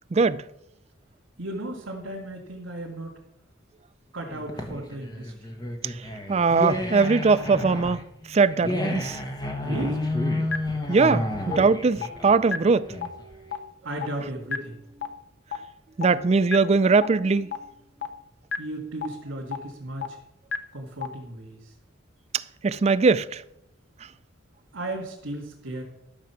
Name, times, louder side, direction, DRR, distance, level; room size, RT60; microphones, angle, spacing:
voice 1, 0.1-0.4 5.8-6.0 6.3-8.0 8.3-9.2 10.9-12.9 16.0-17.5 22.3-23.4, right 4 dB, 30° right, 0.4 m, -21 dB
voice 2, 1.4-3.2 4.1-5.5 9.6-10.0 13.8-14.8 18.6-20.2 20.7-21.7 24.7-25.8, right 1 dB, 80° right, 2.4 m, -35 dB
sound 1, 4.3-13.4, left 1 dB, 20° left, 1.2 m, -30 dB
sound 2, 10.5-10.6 11.0-11.1 11.5-11.6 12.0-12.1 12.5-12.6 13.0-13.1 13.5-13.6 14.0-14.1 14.5-14.6 15.0-15.1 15.5-15.6 16.0-16.1 16.5-16.6 17.0-17.1 17.5-17.6 18.0-18.1 18.5-18.6 19.0-19.1 19.5-19.6 20.0-20.1 20.5-20.6 21.0-21.1, left 7 dB, 60° left, 0.8 m, -28 dB
sound 3, 12.0-15.2 15.9-18.2, equal, 5° right, 4.9 m, -52 dB
12.5 x 6.9 x 5.9 m
head